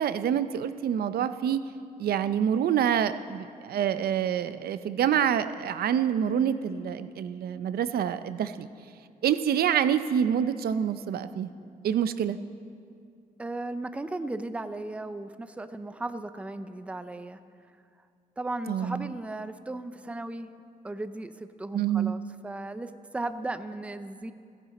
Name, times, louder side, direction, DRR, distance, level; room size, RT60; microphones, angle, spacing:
voice 1, 0.0-1.6 2.0-8.7 9.2-11.5 11.8-12.4 18.7-19.1 21.7-22.1, right 9 dB, 85° right, 12 dB, 0.6 m, -27 dB
voice 2, 13.4-17.4 18.4-20.5 20.8-24.3, right 2 dB, 10° right, 11 dB, 0.5 m, -36 dB
28.5 x 11.0 x 4.2 m, 2.3 s
wide cardioid pair, 155°, 16 cm